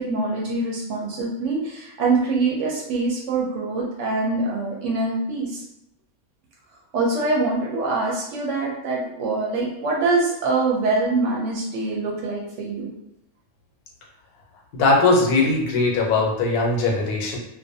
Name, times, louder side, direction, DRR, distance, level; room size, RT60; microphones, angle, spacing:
voice 1, 0.0-5.6 6.9-12.9, right 3 dB, 65° right, -2 dB, 0.8 m, -24 dB
voice 2, 14.7-17.4, left 3 dB, 90° left, 0 dB, 1.1 m, -20 dB
2.5 x 2.2 x 2.5 m, 0.83 s
omnidirectional pair, 1.5 m